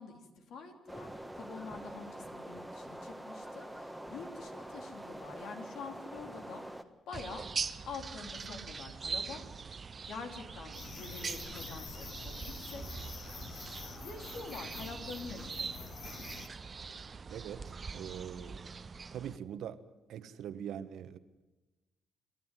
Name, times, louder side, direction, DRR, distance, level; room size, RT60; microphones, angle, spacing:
voice 1, 0.0-6.6 7.1-7.5 7.8-9.4 10.1-13.0 14.0-15.9, left 4 dB, 75° left, 3.6 m, -46 dB
sound 1, 0.9-6.8, right 1 dB, ahead, 1.6 m, -45 dB
sound 2, 7.1-19.4, right 5 dB, 35° right, 0.9 m, -42 dB
sound 3, 10.7-16.5, left 6 dB, 55° left, 1.3 m, -47 dB
voice 2, 17.3-18.7 19.1-19.8 20.1-21.2, right 9 dB, 75° right, 1.3 m, -43 dB
29.0 x 12.0 x 9.2 m
cardioid pair, 90°, 0 cm